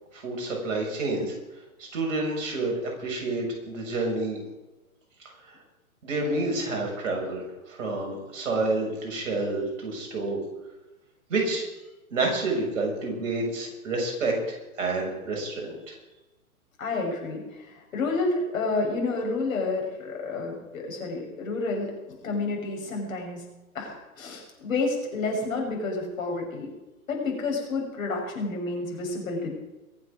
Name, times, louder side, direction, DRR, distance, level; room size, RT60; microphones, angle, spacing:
voice 1, 0.1-1.3 1.8-4.4 6.0-10.4 11.3-11.7 12.1-14.4 14.8-15.9, right 2 dB, 55° right, 0 dB, 7.0 m, -29 dB
voice 2, 16.8-23.4 23.7-26.7 27.1-29.5, left 3 dB, 65° left, 0 dB, 7.0 m, -30 dB
23.0 x 8.3 x 6.5 m, 1.0 s
figure-of-eight pair, 120°, 44 cm